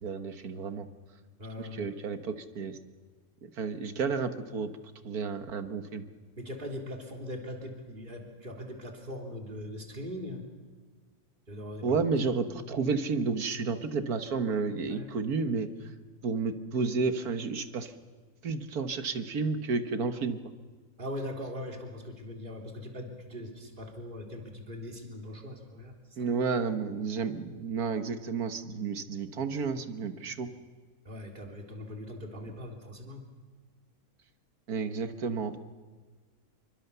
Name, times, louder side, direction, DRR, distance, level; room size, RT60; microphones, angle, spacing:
voice 1, 0.0-0.9 1.6-2.8 3.4-4.7 5.0-6.0 11.8-15.7 16.2-17.9 18.4-20.4 26.2-30.5 34.7-35.6, right 5 dB, 75° right, 9 dB, 1.9 m, -31 dB
voice 2, 1.4-1.9 6.4-10.4 11.5-12.0 14.9-15.1 21.0-26.3 31.1-33.3, left 1 dB, 35° right, 2 dB, 3.6 m, -41 dB
27.5 x 24.5 x 6.9 m, 1.4 s
omnidirectional pair, 1.6 m